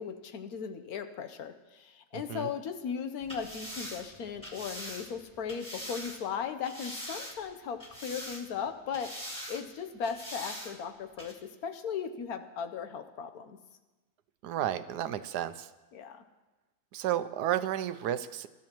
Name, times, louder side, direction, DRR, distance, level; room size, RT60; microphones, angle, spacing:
voice 1, 0.0-11.4 11.6-13.6 15.9-16.2, left 7 dB, 70° left, 8 dB, 1.3 m, -37 dB
voice 2, 2.1-2.5 14.4-15.7 16.9-18.5, right 11 dB, 90° right, 13 dB, 1.2 m, -32 dB
sound 1, 3.2-6.2 6.6-7.5 7.8-8.6 8.9-9.6 10.0-10.7 11.2-11.3, equal, 5° left, 2.0 m, -42 dB
21.5 x 12.5 x 3.0 m, 1.1 s
omnidirectional pair, 1.7 m